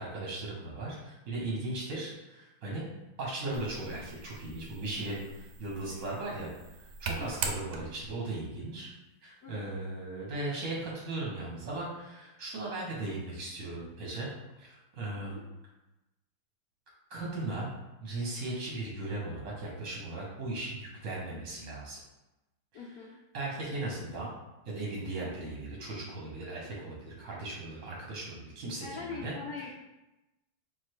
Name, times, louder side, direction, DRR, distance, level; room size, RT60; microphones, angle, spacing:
voice 1, 0.0-2.8 3.2-6.5 7.0-8.9 9.2-14.3 14.6-15.4 17.1-17.7 18.0-22.0 22.7-22.8 23.3-24.3 24.6-29.3, right 2 dB, 55° right, -3 dB, 1.0 m, -37 dB
sound 1, 3.5-8.2, right 5 dB, 75° right, 1.1 m, -41 dB
voice 2, 22.7-23.1 28.8-29.7, left 4 dB, 80° left, -3 dB, 0.8 m, -42 dB
4.0 x 2.5 x 4.5 m, 0.99 s
omnidirectional pair, 2.3 m